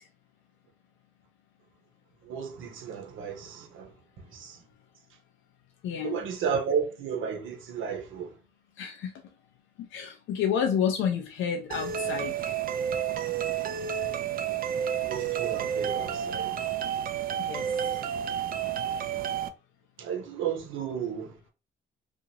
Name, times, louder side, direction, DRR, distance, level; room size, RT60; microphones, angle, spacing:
voice 1, 2.2-3.9 4.3-4.6 6.0-8.3 15.1-16.5 17.8-18.0 18.5-18.6 20.0-21.3, right 7 dB, 80° right, 0.8 m, -33 dB
voice 2, 5.8-6.2 8.8-9.1 9.8-12.5 17.4-17.7, left 8 dB, 75° left, 0.5 m, -30 dB
sound 1, 11.7-19.5, right 9 dB, 50° right, 0.4 m, -30 dB
2.8 x 2.5 x 2.8 m
cardioid pair, 90°, 20 cm